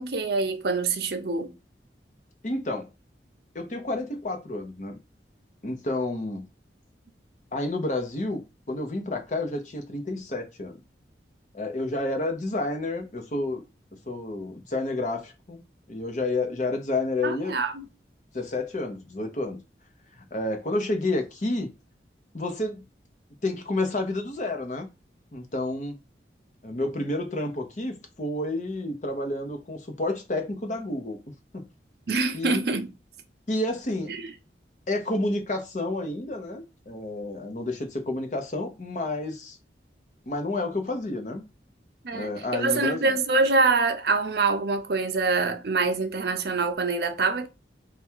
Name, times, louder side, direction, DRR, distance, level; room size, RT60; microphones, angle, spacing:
voice 1, 0.0-1.5 17.2-17.9 32.1-32.9 34.1-34.3 42.0-47.5, right 3 dB, 60° right, 0.6 m, -25 dB
voice 2, 2.4-2.9 3.5-5.0 5.6-6.5 7.5-8.4 8.7-10.8 11.5-13.6 14.1-15.6 15.9-17.5 18.3-19.6 20.2-21.7 22.3-22.8 23.4-24.9 25.3-26.0 26.6-31.2 31.5-31.7 32.3-32.6 33.5-34.2 34.9-39.6 40.3-41.4 42.1-43.0, left 2 dB, 45° left, 0.8 m, -30 dB
3.5 x 2.3 x 4.4 m
head